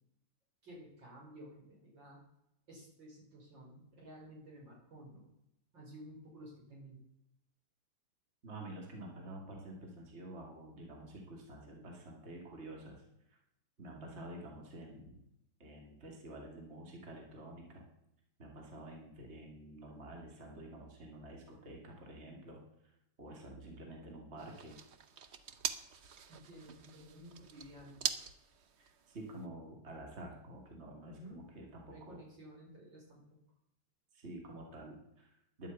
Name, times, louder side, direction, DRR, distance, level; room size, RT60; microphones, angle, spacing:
voice 1, 0.6-2.2 2.7-5.3 5.7-7.0 13.9-14.2 26.3-28.1 31.0-31.5 31.9-33.2, equal, 75° right, -2 dB, 5.1 m, -53 dB
voice 2, 8.4-13.0 13.3-13.4 13.8-15.2 15.6-17.9 18.4-22.9 23.2-24.7 28.8-32.2 34.1-35.7, right 1 dB, 35° right, 0 dB, 2.4 m, -49 dB
sound 1, 24.4-29.5, right 6 dB, 55° right, 0.8 m, -43 dB
11.0 x 9.8 x 8.1 m, 0.83 s
omnidirectional pair, 2.0 m